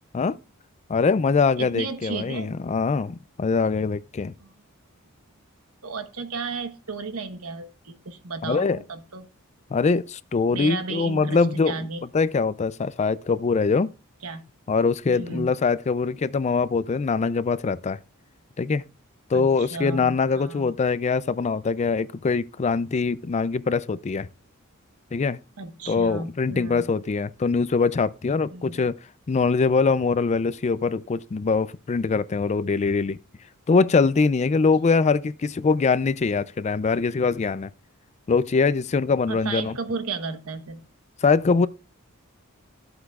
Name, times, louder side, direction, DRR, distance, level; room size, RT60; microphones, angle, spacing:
voice 1, 0.9-4.3 8.4-8.8 9.7-11.8 12.1-13.9 14.7-18.0 18.6-18.8 19.3-24.3 25.1-25.4 25.9-29.0 29.3-33.2 33.7-37.7 38.3-39.8 41.2-41.7, left 4 dB, 30° left, 0.4 m, -23 dB
voice 2, 1.6-2.5 4.4-4.5 5.8-9.3 10.5-12.0 14.2-14.4 15.1-15.5 19.3-20.7 25.6-26.9 28.4-28.9 34.8-34.9 39.3-40.8, right 4 dB, 85° right, 1.1 m, -34 dB
13.0 x 8.0 x 2.4 m
head